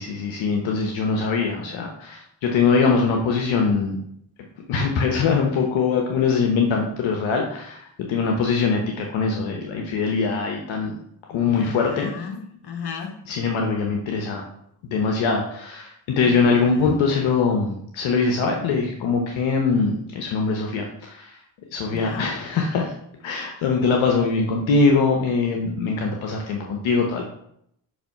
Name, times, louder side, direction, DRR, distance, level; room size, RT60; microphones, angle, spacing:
voice 1, 0.0-4.0 4.7-10.9 11.3-12.1 13.3-14.4 14.9-21.4 21.7-22.9 23.2-27.2, left 4 dB, 75° left, 1 dB, 1.0 m, -22 dB
voice 2, 11.3-13.2 16.2-17.0 21.9-22.3, left 6 dB, 55° left, 4 dB, 1.3 m, -35 dB
6.1 x 3.2 x 5.3 m, 0.72 s
supercardioid pair, 50°, 47 cm